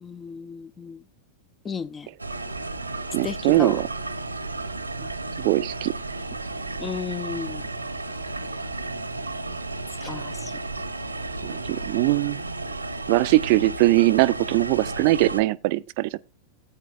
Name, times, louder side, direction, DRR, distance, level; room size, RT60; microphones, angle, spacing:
voice 1, 0.0-1.0 1.6-2.1 3.2-3.8 5.0-5.1 6.8-7.7 10.0-10.6, left 6 dB, 20° left, 0.5 m, -34 dB
sound 1, 2.2-15.4, right 2 dB, 85° right, 0.9 m, -33 dB
voice 2, 3.1-3.8 5.4-5.9 11.4-12.4 13.1-16.2, right 19 dB, 50° right, 0.5 m, -21 dB
15.5 x 8.9 x 2.4 m
figure-of-eight pair, 90°, 0 cm